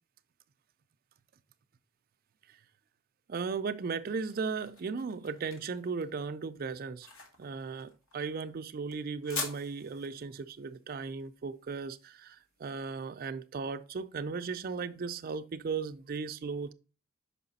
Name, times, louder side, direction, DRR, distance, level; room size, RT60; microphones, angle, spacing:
voice 1, 3.3-7.1 7.4-16.7, right 5 dB, 45° right, 0.4 m, -36 dB
sound 1, 3.8-12.8, left 4 dB, 70° left, 1.4 m, -45 dB
5.9 x 4.8 x 4.0 m
head